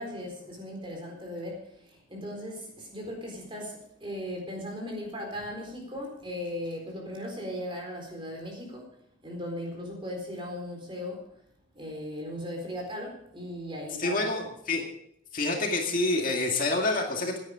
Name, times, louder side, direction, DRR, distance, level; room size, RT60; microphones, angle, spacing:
voice 1, 0.0-8.9 9.2-11.2 11.7-14.3, left 1 dB, 25° right, 1 dB, 4.1 m, -37 dB
voice 2, 14.0-14.8 15.3-17.4, left 2 dB, 45° left, 1 dB, 2.2 m, -27 dB
16.0 x 10.0 x 5.0 m, 0.73 s
head